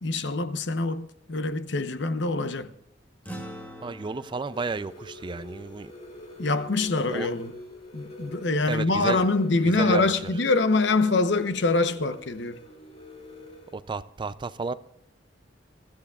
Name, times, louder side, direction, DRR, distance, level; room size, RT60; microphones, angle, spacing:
voice 1, 0.0-2.7 6.4-7.6 7.9-12.6, left 3 dB, 65° left, 0.8 m, -25 dB
sound 1, 3.2-7.9, equal, 10° left, 2.0 m, -46 dB
voice 2, 3.8-5.9 7.1-7.3 8.7-9.2 9.6-10.0 13.7-14.7, right 4 dB, 25° right, 0.4 m, -32 dB
sound 2, 4.5-13.7, left 1 dB, 35° left, 2.3 m, -45 dB
23.0 x 13.5 x 2.4 m
head